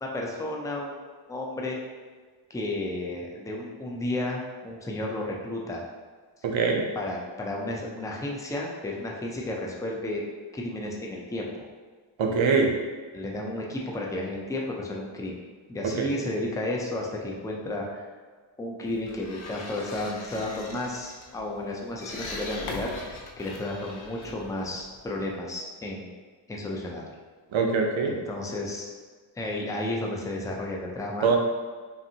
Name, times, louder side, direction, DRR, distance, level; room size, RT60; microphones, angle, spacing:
voice 1, 0.0-1.0 1.3-1.8 2.5-5.8 7.0-10.2 10.5-11.5 13.1-15.4 15.7-18.1 18.6-26.1 26.5-27.1 28.1-28.9 29.4-31.3, left 1 dB, 10° left, -1 dB, 0.4 m, -32 dB
voice 2, 6.4-6.9 12.2-12.7 16.0-16.1 27.5-28.2 31.2-31.4, right 4 dB, 75° right, 1 dB, 0.7 m, -23 dB
sound 1, 18.9-25.4, left 2 dB, 85° left, 0.7 m, -41 dB
5.5 x 2.6 x 2.7 m, 1.5 s
wide cardioid pair, 170°, 47 cm